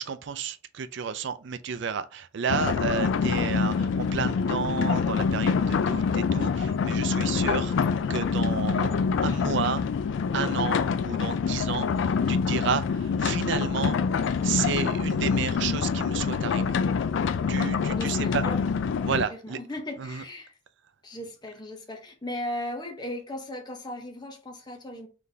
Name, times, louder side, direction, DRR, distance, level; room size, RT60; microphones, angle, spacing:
voice 1, 0.0-9.9 10.3-14.0 14.4-16.8 17.5-18.4 19.0-19.6 20.0-20.2, right 6 dB, 60° right, 0.4 m, -31 dB
sound 1, 2.5-19.2, left 5 dB, 65° left, 0.3 m, -26 dB
voice 2, 18.0-18.6 19.3-20.6 21.0-25.1, left 1 dB, 20° left, 0.8 m, -37 dB
3.8 x 3.4 x 2.7 m
head